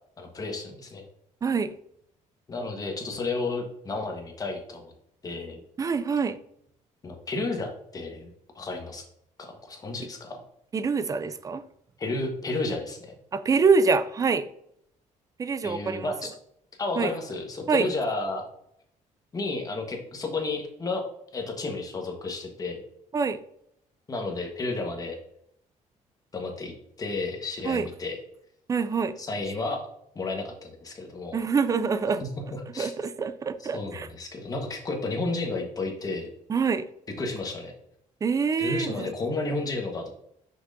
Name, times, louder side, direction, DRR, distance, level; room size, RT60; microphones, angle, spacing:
voice 1, 0.2-1.0 2.5-4.9 5.2-5.6 7.0-8.3 8.5-9.0 9.4-10.4 12.0-13.1 15.6-16.3 16.8-18.4 19.3-21.0 21.3-22.8 24.1-25.2 26.3-28.2 29.2-29.8 30.1-31.4 32.5-32.9 33.6-36.3 37.2-37.7 38.6-40.1, left 3 dB, 25° left, 2 dB, 1.3 m, -32 dB
voice 2, 1.4-1.7 5.8-6.4 10.7-11.6 13.3-14.5 15.4-16.1 17.0-17.1 17.7-17.9 23.1-23.4 27.6-27.9 28.7-29.2 31.3-32.2 32.8-34.1 36.5-36.9 38.2-39.1, right 5 dB, 25° right, 12 dB, 0.4 m, -25 dB
6.1 x 5.9 x 2.6 m, 0.73 s
cardioid pair, 140°, 14 cm